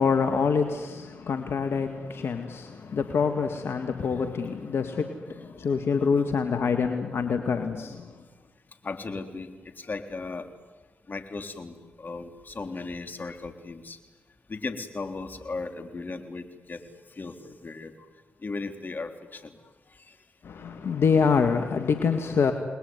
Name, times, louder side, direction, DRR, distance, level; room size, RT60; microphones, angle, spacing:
voice 1, 0.0-8.1 20.4-22.5, left 5 dB, 65° left, 6 dB, 2.0 m, -26 dB
voice 2, 2.7-3.0 4.2-4.3 8.8-10.5 11.1-14.0 14.5-16.8 17.1-18.1 18.4-19.6 19.9-20.2, left 3 dB, 45° left, 7 dB, 3.6 m, -37 dB
29.0 x 21.0 x 9.6 m, 1.2 s
supercardioid pair, 40°, 4 cm